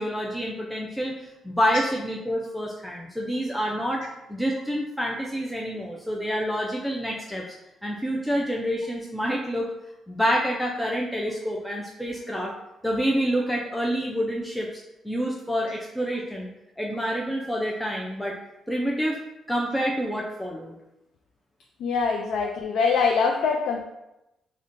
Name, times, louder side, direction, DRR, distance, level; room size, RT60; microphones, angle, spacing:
voice 1, 0.0-4.0 4.3-7.4 7.8-9.7 10.1-12.5 12.8-16.5 16.8-18.4 18.7-19.2 19.5-20.7, equal, ahead, -3 dB, 0.3 m, -27 dB
voice 2, 21.8-23.8, left 5 dB, 85° left, 2 dB, 0.3 m, -23 dB
5.1 x 2.1 x 2.5 m, 0.93 s
cardioid pair, 155°, 0 cm